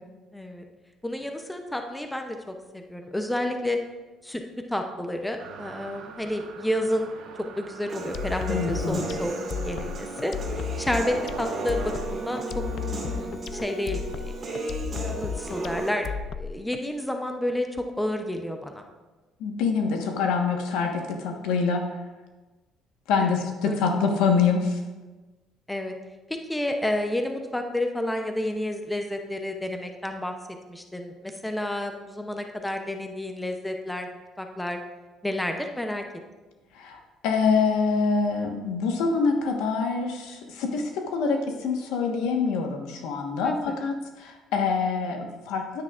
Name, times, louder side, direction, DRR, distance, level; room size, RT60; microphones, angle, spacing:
voice 1, 0.3-0.6 1.0-3.8 4.2-4.4 4.7-7.1 7.6-9.3 9.6-10.3 10.8-14.3 15.1-16.1 16.4-18.8 21.3-21.5 23.2-23.7 25.7-26.0 26.5-30.3 30.7-34.8 35.2-36.0 43.4-43.7, left 1 dB, 5° left, 4 dB, 0.6 m, -30 dB
sound 1, 5.4-13.3, right 4 dB, 70° right, 1.1 m, -40 dB
Human voice / Piano, 7.9-15.9, right 2 dB, 30° right, 1.9 m, -35 dB
sound 2, 8.1-16.8, left 7 dB, 50° left, 0.3 m, -34 dB
voice 2, 8.5-9.1 19.4-21.8 23.1-24.8 36.7-45.8, left 5 dB, 90° left, 3 dB, 1.2 m, -25 dB
10.0 x 9.4 x 2.4 m, 1.2 s
cardioid pair, 140°, 0 cm